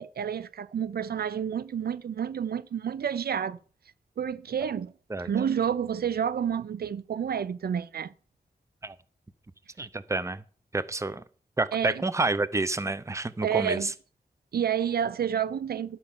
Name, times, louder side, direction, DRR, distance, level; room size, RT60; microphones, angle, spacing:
voice 1, 0.0-3.6 4.2-4.9 5.2-8.1 11.7-12.0 13.4-13.9 14.5-16.0, right 8 dB, 75° right, 0.4 m, -29 dB
voice 2, 9.8-10.4 10.7-11.2 11.6-13.9, right 2 dB, 20° right, 0.6 m, -29 dB
11.5 x 5.7 x 7.0 m
wide cardioid pair, 100°, 16 cm